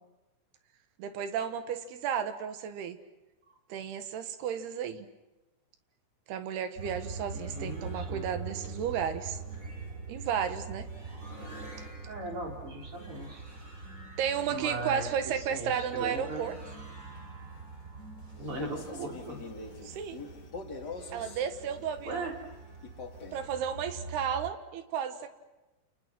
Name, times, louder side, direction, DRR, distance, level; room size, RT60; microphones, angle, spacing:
voice 1, 1.0-3.0 3.7-5.1 6.3-9.4 10.1-10.9 14.2-16.6 19.8-20.2 21.1-22.3 23.3-25.3, right 8 dB, 75° right, 9 dB, 3.4 m, -33 dB
sound 1, 6.8-24.4, right 3 dB, 15° right, 8.0 m, -44 dB
voice 2, 7.3-8.3 12.1-13.4 14.5-15.1 15.3-16.5 18.4-19.4 22.0-22.3, right 2 dB, 30° right, 1 dB, 4.5 m, -38 dB
Male speech man speaking, 18.3-21.5 22.8-23.5, left 4 dB, 35° left, 1.9 m, -43 dB
29.0 x 29.0 x 6.1 m, 1.0 s
omnidirectional pair, 4.9 m